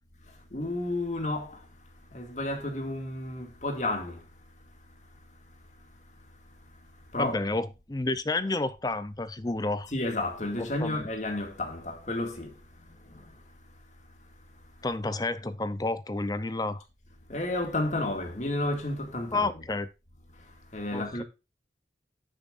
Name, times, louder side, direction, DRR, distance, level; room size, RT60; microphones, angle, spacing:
voice 1, 0.5-1.5 2.1-4.2 7.1-7.4 9.9-12.5 17.3-19.6 20.7-21.2, left 2 dB, 45° left, 2.2 m, -31 dB
voice 2, 7.2-9.9 10.8-11.0 14.8-16.8 19.3-19.9 20.9-21.2, left 2 dB, 20° left, 0.6 m, -30 dB
10.0 x 9.0 x 2.5 m
head